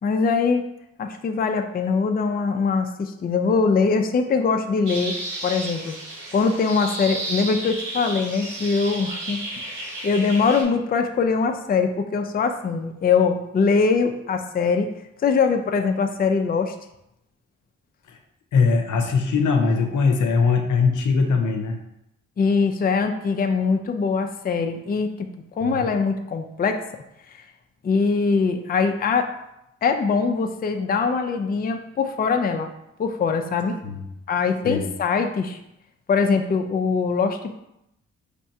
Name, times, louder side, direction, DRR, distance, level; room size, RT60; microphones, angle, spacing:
voice 1, 0.0-0.6 1.0-5.2 5.4-5.9 6.3-14.9 15.2-16.7 22.4-25.1 25.6-26.8 27.3-27.4 27.8-29.3 29.8-32.7 33.0-33.8 34.3-35.6 36.1-37.6, left 5 dB, 30° left, 5 dB, 0.4 m, -22 dB
sound 1, 4.9-10.6, right 2 dB, 75° right, 1.1 m, -33 dB
voice 2, 18.5-21.8 25.6-25.9 33.8-34.1 34.6-34.9, left 4 dB, 75° left, 4 dB, 0.6 m, -21 dB
4.4 x 3.3 x 2.7 m, 0.83 s
cardioid pair, 65°, 30 cm